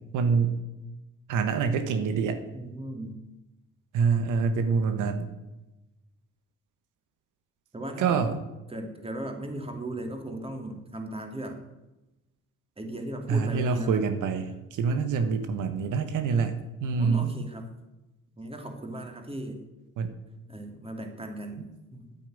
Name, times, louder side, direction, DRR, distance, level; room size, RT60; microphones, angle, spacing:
voice 1, 0.1-0.6 1.3-2.4 3.9-5.3 8.0-8.4 13.3-17.3 20.0-20.1, right 5 dB, 85° right, 8 dB, 1.3 m, -26 dB
voice 2, 2.5-3.2 7.7-8.2 8.7-11.6 12.8-14.1 17.0-17.7 18.4-19.6 20.5-21.7 21.9-22.0, right 1 dB, 20° right, 4 dB, 2.9 m, -37 dB
9.4 x 9.1 x 9.3 m, 1.0 s
cardioid pair, 90°, 30 cm